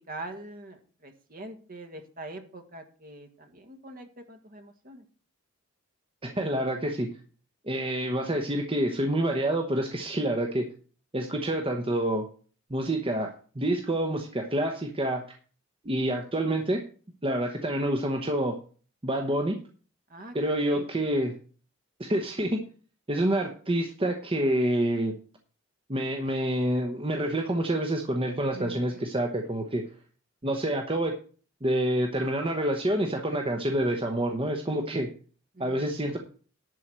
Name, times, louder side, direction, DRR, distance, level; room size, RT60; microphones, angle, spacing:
voice 1, 0.1-5.0 20.1-20.3 20.7-20.9 28.5-29.0 35.5-35.9, right 2 dB, 45° right, 7 dB, 1.7 m, -43 dB
voice 2, 6.2-7.1 7.6-10.7 11.1-12.3 12.7-15.2 15.8-16.8 17.2-18.6 19.0-19.6 20.3-21.3 22.0-22.6 23.1-25.2 25.9-29.8 30.4-31.2 31.6-35.1 35.6-36.2, right 1 dB, 25° right, 3 dB, 1.0 m, -27 dB
11.0 x 4.7 x 7.4 m, 0.41 s
head